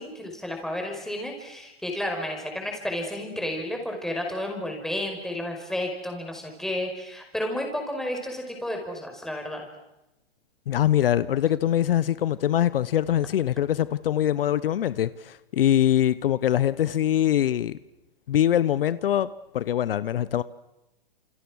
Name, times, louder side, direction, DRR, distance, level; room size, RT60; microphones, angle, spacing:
voice 1, 0.0-9.6, left 1 dB, ahead, 5.3 m, -32 dB
voice 2, 10.7-17.8 18.3-19.3 19.5-20.4, left 11 dB, 65° left, 1.0 m, -23 dB
29.5 x 28.5 x 6.4 m
hypercardioid pair, 145°, 30 cm